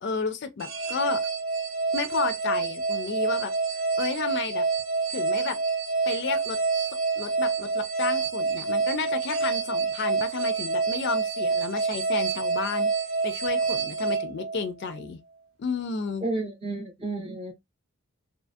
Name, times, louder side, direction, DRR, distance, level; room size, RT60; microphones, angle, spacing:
voice 1, 0.0-1.2 1.9-3.5 4.0-4.7 5.1-5.6 6.1-6.6 6.9-12.9 13.2-15.2 15.6-16.3, left 5 dB, 50° left, 0.3 m, -32 dB
sound 1, 0.6-15.0, right 4 dB, 60° right, 0.6 m, -27 dB
voice 2, 16.2-17.5, right 2 dB, 25° right, 0.7 m, -31 dB
2.7 x 2.3 x 2.5 m
head